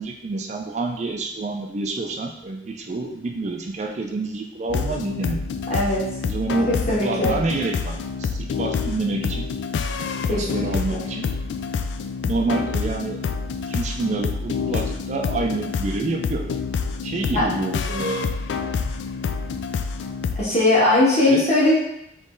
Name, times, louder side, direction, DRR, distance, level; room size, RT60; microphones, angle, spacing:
voice 1, 0.0-5.4 6.2-6.8 7.0-9.5 10.3-11.3 12.2-13.2 13.7-16.5 17.0-18.3 21.3-21.4, right 3 dB, 40° right, 2 dB, 0.4 m, -27 dB
sound 1, 4.7-20.4, left 5 dB, 85° left, 0.3 m, -27 dB
voice 2, 5.7-6.1 6.7-7.4 10.3-11.0 17.3-17.5 20.4-21.7, left 2 dB, 40° left, -7 dB, 1.5 m, -20 dB
3.8 x 3.0 x 3.8 m, 0.81 s
head